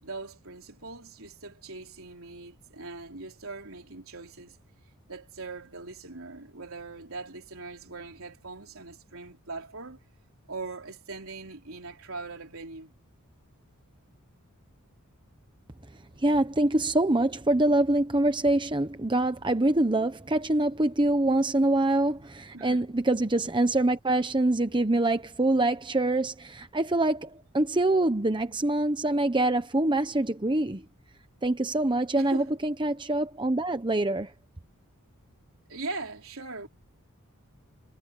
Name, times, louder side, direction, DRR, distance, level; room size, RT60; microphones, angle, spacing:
voice 1, 0.0-4.6 5.1-10.0 10.5-12.9 22.5-22.8 32.2-32.5 35.7-36.7, right 3 dB, 65° right, 4.3 m, -40 dB
voice 2, 16.2-30.8 31.4-34.3, right 2 dB, 20° right, 1.0 m, -25 dB
head